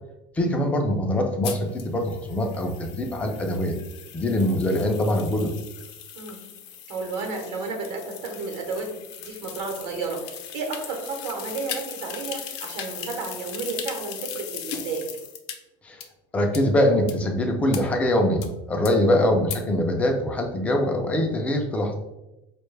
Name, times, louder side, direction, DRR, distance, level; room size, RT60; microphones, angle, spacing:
voice 1, 0.3-3.8 4.1-5.5 15.8-16.0 16.3-21.9, left 1 dB, 10° left, 3 dB, 0.3 m, -23 dB
sound 1, 1.4-15.5 16.0-16.1 16.5-16.6 17.1-17.2 17.7-17.8 18.4-18.5 18.8-18.9 19.5-19.6, left 8 dB, 75° left, 0.5 m, -38 dB
voice 2, 6.9-15.1 18.9-19.1, right 4 dB, 60° right, 1 dB, 0.9 m, -32 dB
4.4 x 2.2 x 3.2 m, 0.94 s
cardioid pair, 175°, 15 cm